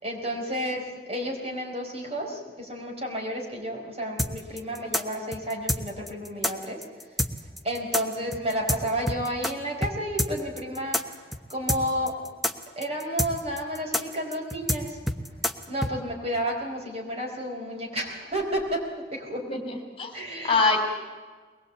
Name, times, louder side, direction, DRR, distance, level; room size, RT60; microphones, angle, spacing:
voice 1, 0.0-6.8 7.6-11.0 11.5-12.1 12.8-15.3 15.7-18.8 19.1-19.6 20.1-20.8, equal, 35° right, 0 dB, 4.7 m, -31 dB
sound 1, 4.2-9.5 9.8-9.9 10.2-15.9, left 1 dB, ahead, 1.1 m, -27 dB
voice 2, 19.5-20.1 20.4-20.8, left 3 dB, 30° left, 4 dB, 3.1 m, -24 dB
22.5 x 20.5 x 8.4 m, 1.4 s
head